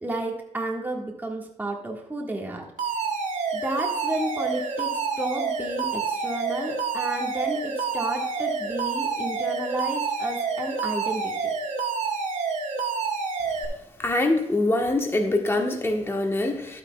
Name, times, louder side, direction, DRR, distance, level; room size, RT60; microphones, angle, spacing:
voice 1, 0.0-2.6 3.5-11.5, right 1 dB, 15° right, 0 dB, 1.7 m, -32 dB
Alarm, 2.8-13.6, right 5 dB, 85° right, 2.0 m, -28 dB
voice 2, 14.0-16.8, left 2 dB, 20° left, 2 dB, 1.3 m, -24 dB
11.5 x 9.5 x 2.3 m, 0.86 s
cardioid pair, 115°, 12 cm